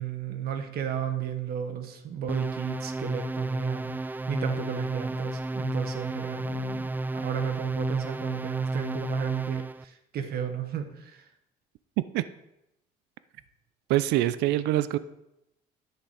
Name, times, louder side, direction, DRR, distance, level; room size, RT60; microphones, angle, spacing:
voice 1, 0.0-11.2, right 8 dB, 65° right, 7 dB, 1.3 m, -34 dB
sound 1, 2.3-9.8, right 2 dB, 10° right, 0.3 m, -31 dB
voice 2, 13.9-15.0, right 14 dB, 85° right, 15 dB, 0.5 m, -24 dB
10.5 x 6.7 x 4.9 m, 0.86 s
cardioid pair, 110°, 17 cm